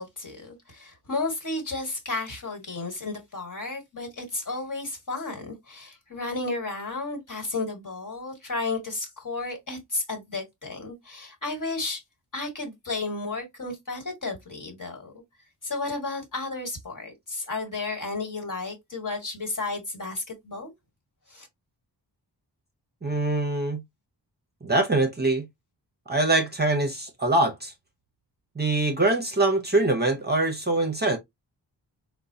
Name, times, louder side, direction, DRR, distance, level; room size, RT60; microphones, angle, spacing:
voice 1, 0.0-12.0 12.3-15.1 15.6-20.7 21.3-21.5, left 3 dB, 45° left, 1.5 m, -33 dB
voice 2, 23.0-23.8 24.6-25.5 26.1-27.7 28.6-31.2, right 2 dB, 25° right, 0.7 m, -23 dB
3.8 x 2.1 x 2.6 m
wide cardioid pair, 80°, 43 cm